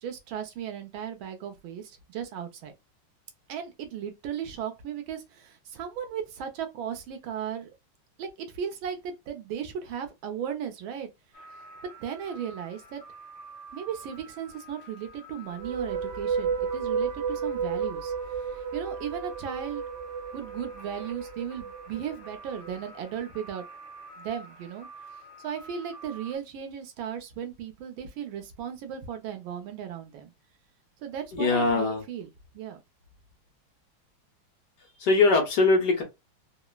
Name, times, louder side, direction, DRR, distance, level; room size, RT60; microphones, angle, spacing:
voice 1, 0.0-2.7 3.5-7.7 8.2-11.1 12.0-13.0 13.7-19.8 20.3-23.7 24.2-24.9 25.4-30.3 31.0-32.3 32.5-32.8, right 8 dB, 80° right, 1.5 m, -36 dB
sound 1, 11.3-26.4, right 2 dB, 40° left, 1.0 m, -48 dB
sound 2, 15.5-22.8, right 6 dB, 40° right, 0.9 m, -32 dB
voice 2, 31.3-32.0 35.0-36.0, left 3 dB, 60° left, 1.5 m, -22 dB
3.8 x 2.0 x 2.2 m
omnidirectional pair, 2.2 m